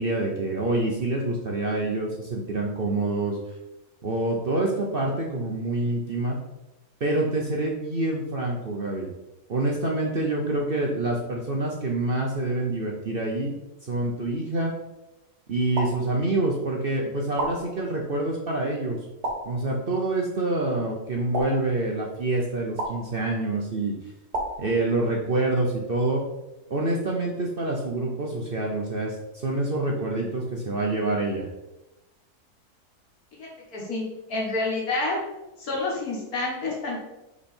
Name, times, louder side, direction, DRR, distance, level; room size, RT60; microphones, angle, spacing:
voice 1, 0.0-3.4 4.0-6.4 7.0-9.1 9.5-13.5 13.9-14.7 15.5-19.0 19.4-23.9 24.6-26.2 26.7-29.1 29.4-31.5, right 2 dB, 45° right, -1 dB, 0.9 m, -26 dB
sound 1, 15.8-16.7 17.4-18.3 19.2-20.1 21.3-22.2 22.8-23.6 24.3-25.3, right 1 dB, 80° right, 1.9 m, -34 dB
voice 2, 33.3-34.0 34.3-35.2 35.6-37.0, left 2 dB, 65° left, -2 dB, 2.1 m, -28 dB
5.7 x 4.8 x 4.3 m, 0.97 s
omnidirectional pair, 1.7 m